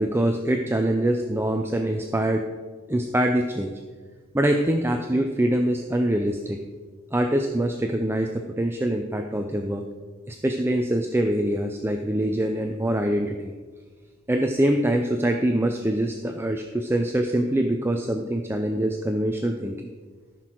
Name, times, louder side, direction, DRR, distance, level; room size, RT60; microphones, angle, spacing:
voice 1, 0.0-2.4 2.9-3.7 4.3-6.6 7.1-8.3 8.6-9.8 10.3-13.5 14.3-19.7, right 1 dB, 10° right, 4 dB, 0.5 m, -24 dB
14.0 x 6.2 x 4.5 m, 1.4 s
head